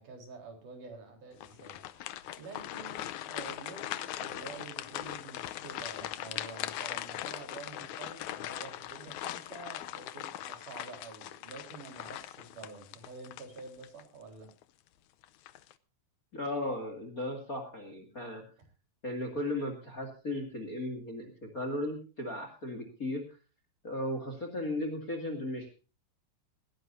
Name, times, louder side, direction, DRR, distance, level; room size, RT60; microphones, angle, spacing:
voice 1, 0.0-2.0 2.4-14.5, right 4 dB, 60° right, 3 dB, 5.6 m, -48 dB
sound 1, 1.4-14.0 14.5-14.6 15.2-15.7, left 13 dB, 75° left, 1.8 m, -40 dB
voice 2, 16.3-18.4 19.0-23.2 23.8-25.7, left 1 dB, 25° left, 6 dB, 2.4 m, -36 dB
19.0 x 16.5 x 2.7 m, 0.34 s
omnidirectional pair, 4.1 m